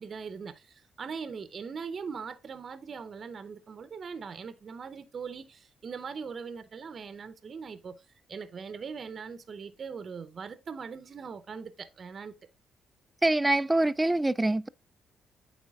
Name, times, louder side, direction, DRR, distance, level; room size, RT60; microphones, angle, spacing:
voice 1, 0.0-12.4, right 5 dB, 50° right, 0.7 m, -41 dB
voice 2, 13.2-14.7, right 2 dB, 15° right, 0.3 m, -25 dB
8.5 x 3.5 x 3.5 m
supercardioid pair, 75°, 0 cm